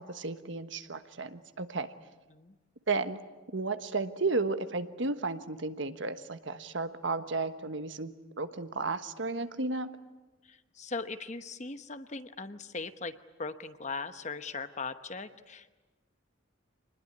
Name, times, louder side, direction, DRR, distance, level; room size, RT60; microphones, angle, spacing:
voice 1, 0.0-1.9 2.9-3.2 3.5-9.9, right 3 dB, 70° right, 10 dB, 1.3 m, -33 dB
voice 2, 10.4-15.7, left 4 dB, 35° left, 11 dB, 1.0 m, -39 dB
26.5 x 20.5 x 9.7 m, 1.2 s
head